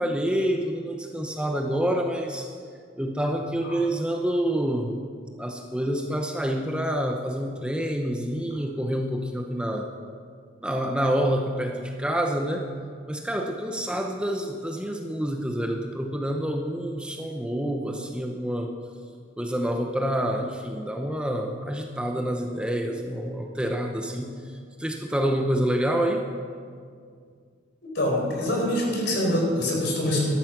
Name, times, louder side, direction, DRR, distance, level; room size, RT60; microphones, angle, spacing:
voice 1, 0.0-2.5 3.0-5.0 5.4-9.9 10.6-12.7 13.1-18.7 19.4-26.3, equal, 5° right, 3 dB, 0.7 m, -27 dB
voice 2, 27.8-30.4, left 1 dB, 65° left, -1 dB, 4.5 m, -24 dB
13.5 x 12.5 x 6.0 m, 2.1 s
head